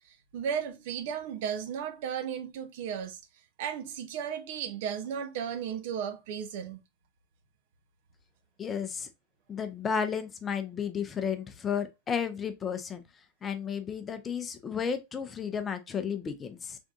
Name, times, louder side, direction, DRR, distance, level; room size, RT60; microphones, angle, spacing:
voice 1, 0.3-3.2 3.6-6.8, right 8 dB, 50° right, 0.7 m, -34 dB
voice 2, 8.6-9.1 9.5-13.0 13.4-16.8, left 7 dB, 20° left, 0.6 m, -33 dB
3.6 x 3.5 x 2.3 m
figure-of-eight pair, 90°, 0 cm